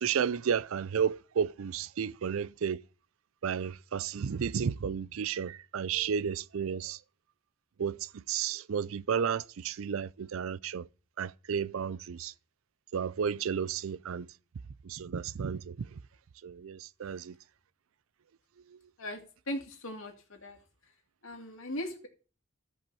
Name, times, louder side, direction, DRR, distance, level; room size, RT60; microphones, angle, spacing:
voice 1, 0.0-2.8 3.4-7.0 7.8-10.9 11.2-12.3 12.9-14.3 14.8-15.8 16.4-17.4, right 7 dB, 90° right, 0.4 m, -32 dB
voice 2, 19.5-20.1 20.4-20.6 21.2-22.1, left 1 dB, 90° left, 2.5 m, -38 dB
13.5 x 5.4 x 6.9 m
head